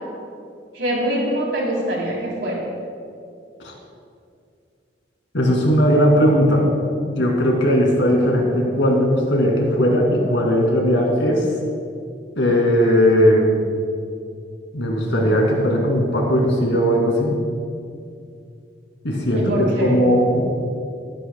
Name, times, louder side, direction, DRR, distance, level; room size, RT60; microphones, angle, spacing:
voice 1, 0.7-2.6 19.3-20.0, right 1 dB, 65° right, -3 dB, 3.2 m, -23 dB
voice 2, 5.3-6.7 7.0-11.5 12.4-13.6 14.7-17.4 19.0-20.4, equal, 80° left, 0 dB, 2.4 m, -18 dB
23.0 x 9.2 x 2.2 m, 2.4 s
head